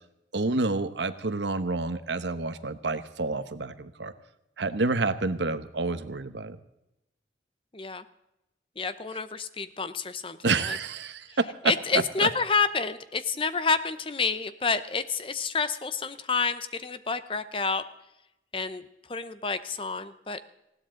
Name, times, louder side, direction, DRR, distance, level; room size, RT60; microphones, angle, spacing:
voice 1, 0.3-4.1 4.6-6.6 10.4-11.7 12.2-12.3, right 3 dB, 80° right, 12 dB, 1.0 m, -28 dB
voice 2, 7.7-8.0 8.8-10.4 10.7-10.8 11.7-17.8 18.5-18.8 19.1-20.4, left 5 dB, 30° left, 12 dB, 0.8 m, -29 dB
20.0 x 16.5 x 3.8 m, 0.88 s
head